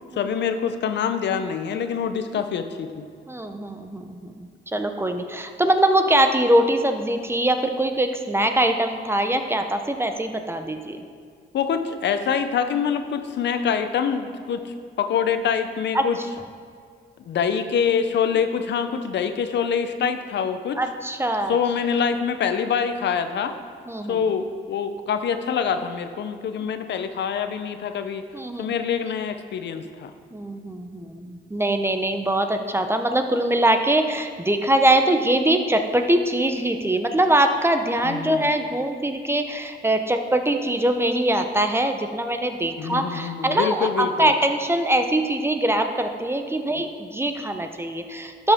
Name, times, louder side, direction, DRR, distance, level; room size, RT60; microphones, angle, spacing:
voice 1, 0.1-3.1 11.5-16.2 17.3-20.8 21.5-23.6 24.1-28.2 28.6-30.1 38.0-38.5 42.8-44.3, left 7 dB, 60° left, 9 dB, 0.7 m, -25 dB
voice 2, 3.3-11.0 15.9-16.0 20.8-21.6 23.9-24.2 28.3-28.7 30.3-48.5, right 1 dB, 10° right, 6 dB, 0.7 m, -22 dB
12.0 x 7.2 x 3.6 m, 2.1 s
cardioid pair, 90°, 20 cm